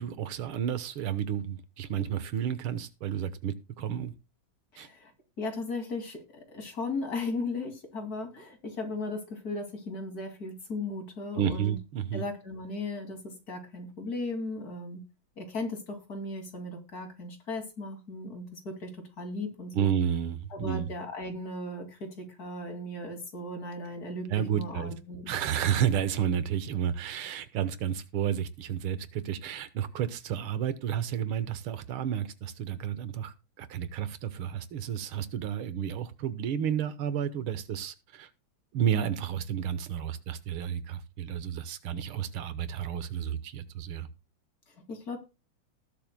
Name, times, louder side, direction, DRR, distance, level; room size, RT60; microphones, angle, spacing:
voice 1, 0.0-4.1 4.8-4.9 11.4-12.3 19.7-20.9 24.3-24.9 25.3-38.3 38.7-44.1, right 9 dB, 85° right, 13 dB, 1.8 m, -31 dB
voice 2, 4.7-5.1 5.4-11.8 12.1-15.0 15.4-19.9 20.5-24.3 24.5-25.3 44.7-45.2, left 2 dB, 45° left, 4 dB, 3.0 m, -37 dB
19.0 x 7.5 x 2.2 m, 0.27 s
omnidirectional pair, 2.3 m